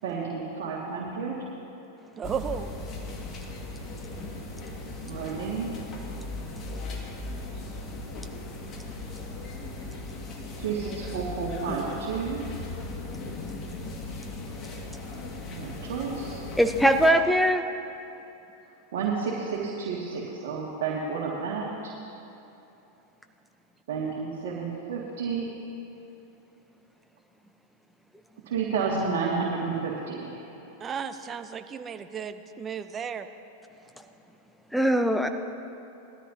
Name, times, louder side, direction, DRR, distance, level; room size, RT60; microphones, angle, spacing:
voice 1, 0.0-1.3 5.0-5.8 10.6-12.4 15.5-16.4 18.9-21.9 23.9-25.5 28.5-30.5, right 5 dB, 65° right, -5 dB, 2.1 m, -31 dB
sound 1, 2.2-17.1, left 2 dB, 35° left, 2.1 m, -38 dB
voice 2, 2.2-2.7 30.8-33.3, right 7 dB, 25° right, 9 dB, 0.8 m, -34 dB
voice 3, 16.6-17.6 34.7-35.3, equal, ahead, 6 dB, 0.9 m, -21 dB
20.0 x 13.5 x 2.9 m, 2.9 s
hypercardioid pair, 100°, 0 cm